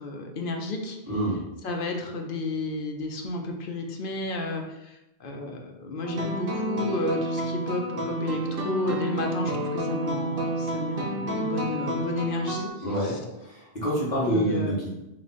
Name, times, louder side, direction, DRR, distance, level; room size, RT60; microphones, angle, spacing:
voice 1, 0.0-1.0 1.6-12.7 13.0-13.2 14.3-14.7, left 2 dB, 60° left, 2 dB, 0.8 m, -32 dB
voice 2, 1.0-1.4 12.8-14.9, right 1 dB, 45° left, -6 dB, 1.6 m, -27 dB
sound 1, 6.0-12.7, right 1 dB, 65° right, 0.9 m, -30 dB
3.5 x 3.2 x 4.1 m, 0.95 s
omnidirectional pair, 1.0 m